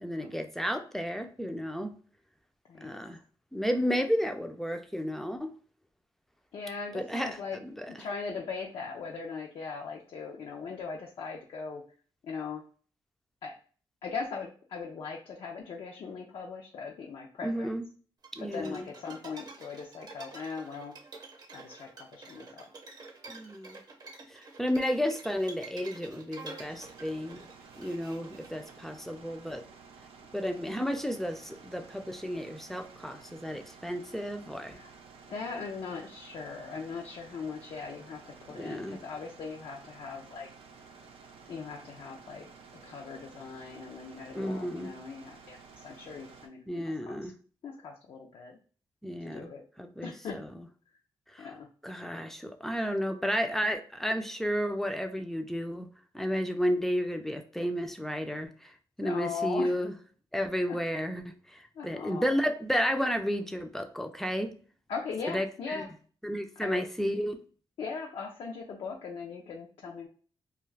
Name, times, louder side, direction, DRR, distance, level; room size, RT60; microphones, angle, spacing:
voice 1, 0.0-1.9 2.8-3.2 3.5-5.5 6.9-8.1 17.4-17.8 18.3-18.9 23.3-23.8 24.3-27.4 27.8-29.6 30.3-34.8 38.5-39.0 44.3-44.9 46.7-47.3 49.0-49.4 49.8-50.6 51.3-51.5 51.8-55.9 56.1-58.7 59.0-59.9 60.3-64.5 65.3-65.8 66.2-67.4, equal, 5° left, 6 dB, 0.4 m, -32 dB
voice 2, 2.7-3.0 6.5-7.6 7.9-11.8 12.2-12.6 13.4-13.5 14.0-17.7 18.4-20.9 21.5-22.6 34.7-34.9 35.3-40.5 41.5-42.5 42.8-47.3 47.6-48.6 49.3-49.6 50.0-50.4 51.4-51.7 59.0-59.7 60.7-60.8 61.8-62.3 64.9-65.9 66.6-66.8 67.8-70.1, left 5 dB, 65° left, 0 dB, 0.5 m, -39 dB
sound 1, 18.2-28.7, right 3 dB, 45° right, 0.7 m, -48 dB
sound 2, 26.6-46.5, right 5 dB, 80° right, 0.5 m, -53 dB
2.3 x 2.3 x 3.2 m, 0.41 s
cardioid pair, 95°, 9 cm